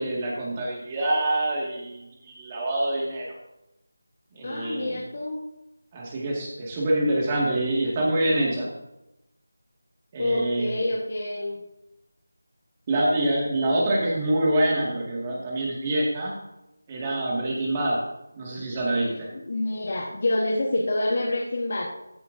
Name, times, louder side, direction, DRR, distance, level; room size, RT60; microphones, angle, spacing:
voice 1, 0.0-3.3 4.3-5.0 5.9-8.7 10.1-10.7 12.9-16.3 16.9-18.0 18.3-19.3, right 1 dB, 25° right, -3 dB, 2.1 m, -25 dB
voice 2, 4.4-5.4 10.2-11.6 19.3-21.9, left 1 dB, 50° left, -2 dB, 1.5 m, -27 dB
14.0 x 9.9 x 2.8 m, 0.90 s
figure-of-eight pair, 165°, 0 cm